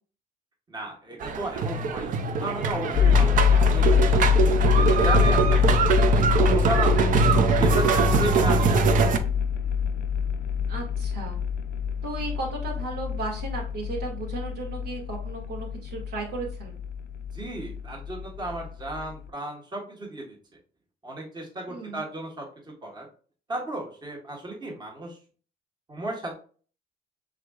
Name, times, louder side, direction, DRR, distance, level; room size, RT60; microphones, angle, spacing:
voice 1, 0.7-4.2 4.8-7.1 7.5-9.1 17.3-20.4 21.0-22.5 22.8-23.1 23.5-25.2 25.9-26.3, right 1 dB, 25° right, -1 dB, 1.3 m, -34 dB
sound 1, 1.2-9.2, right 5 dB, 50° right, 0.6 m, -23 dB
sound 2, 2.9-19.3, left 7 dB, 65° left, 0.4 m, -25 dB
voice 2, 10.7-11.4 12.0-16.8 21.7-22.0, right 2 dB, 80° right, -1 dB, 1.9 m, -35 dB
4.9 x 3.6 x 2.3 m, 0.41 s
cardioid pair, 110°, 17 cm